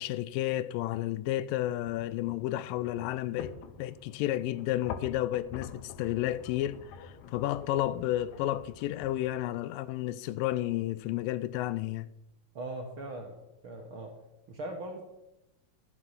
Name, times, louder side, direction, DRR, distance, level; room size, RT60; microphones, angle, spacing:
voice 1, 0.0-12.1, left 14 dB, 85° left, 2.2 m, -32 dB
sound 1, 1.8-9.3, left 7 dB, 70° left, 1.9 m, -46 dB
voice 2, 12.5-13.3 13.6-14.1 14.5-15.0, right 1 dB, 65° right, 1.3 m, -39 dB
12.5 x 8.6 x 5.6 m
omnidirectional pair, 3.9 m